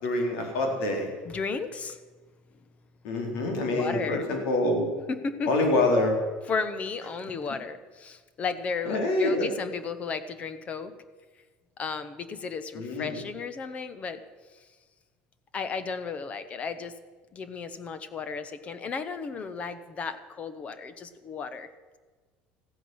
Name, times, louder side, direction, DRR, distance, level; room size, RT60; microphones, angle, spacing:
voice 1, 0.0-1.1 3.0-4.9 5.5-6.1 8.9-9.5 12.7-13.2, left 2 dB, 80° left, 2 dB, 4.1 m, -26 dB
voice 2, 1.2-2.0 3.7-4.3 5.1-5.5 6.5-11.0 11.8-14.2 15.5-16.9 17.3-21.7, left 5 dB, 30° left, 12 dB, 1.0 m, -34 dB
15.0 x 10.0 x 7.8 m, 1.4 s
cardioid pair, 135°, 4 cm